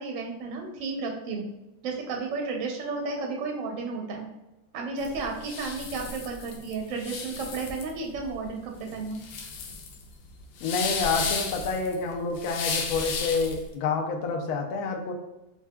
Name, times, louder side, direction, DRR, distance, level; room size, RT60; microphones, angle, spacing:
voice 1, 0.0-1.5 1.8-4.3 4.7-9.2, right 4 dB, 65° right, 1 dB, 0.8 m, -33 dB
sound 1, 5.0-13.7, left 5 dB, 85° left, 1.3 m, -34 dB
voice 2, 10.6-15.1, left 4 dB, 70° left, 3 dB, 0.9 m, -28 dB
5.6 x 2.3 x 2.2 m, 0.98 s
omnidirectional pair, 2.0 m